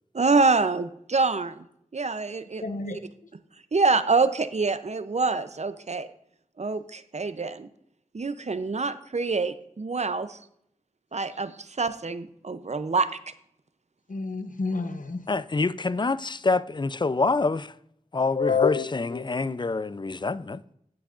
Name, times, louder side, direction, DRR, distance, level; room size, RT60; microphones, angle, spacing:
voice 1, 0.1-1.6 1.9-3.0 3.7-6.1 6.6-7.7 8.1-10.4 11.1-11.5 11.8-13.1, right 4 dB, 60° right, 0.5 m, -26 dB
voice 2, 2.6-3.0 14.1-15.2 18.4-19.2, left 5 dB, 85° left, 0.8 m, -28 dB
voice 3, 15.3-17.7 18.1-20.6, left 3 dB, 35° left, 0.4 m, -26 dB
16.0 x 6.0 x 2.5 m
wide cardioid pair, 45°, 13 cm